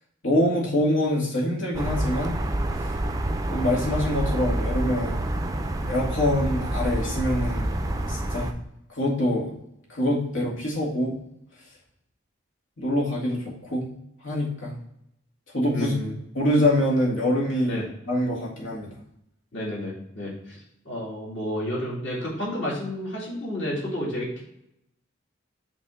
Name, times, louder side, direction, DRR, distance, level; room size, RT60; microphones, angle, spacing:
voice 1, 0.2-2.4 3.5-5.2 5.9-7.7 8.1-8.5 8.9-9.5 9.9-11.2 12.8-13.9 14.2-14.7 15.5-15.9 16.3-17.8 18.1-18.9, left 1 dB, 85° left, -4 dB, 2.2 m, -25 dB
sound 1, 1.7-8.5, right 1 dB, 20° right, 0.4 m, -27 dB
voice 2, 15.7-16.1 17.7-17.8 19.5-20.6 20.8-24.4, left 1 dB, 65° left, -5 dB, 2.6 m, -31 dB
5.8 x 3.6 x 4.9 m, 0.78 s
head